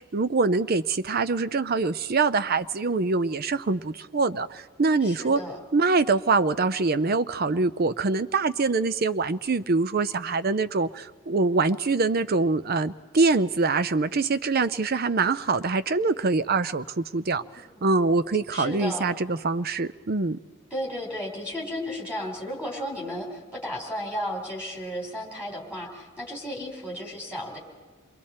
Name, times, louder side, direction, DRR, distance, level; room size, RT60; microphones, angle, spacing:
voice 1, 0.0-5.4 5.7-17.4 17.8-20.4, right 3 dB, 45° right, 13 dB, 0.5 m, -24 dB
voice 2, 5.0-5.6 17.8-17.9 18.5-19.0 20.7-27.6, equal, 5° right, -3 dB, 3.4 m, -34 dB
28.5 x 22.0 x 4.3 m, 1.4 s
head